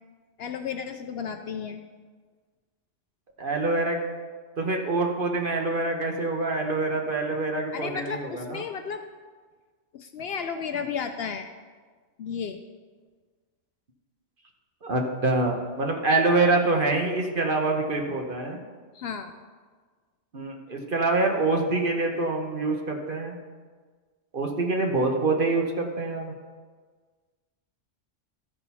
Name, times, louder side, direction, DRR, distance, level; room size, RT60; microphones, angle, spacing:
voice 1, 0.4-1.8 7.7-9.1 9.9-11.5 12.2-12.6 18.9-19.3, left 6 dB, 65° left, 7 dB, 0.7 m, -33 dB
voice 2, 3.4-4.0 4.6-8.6 14.8-18.6 20.3-23.3 24.3-26.3, right 2 dB, 45° right, 2 dB, 1.1 m, -25 dB
13.5 x 4.5 x 5.5 m, 1.5 s
omnidirectional pair, 1.3 m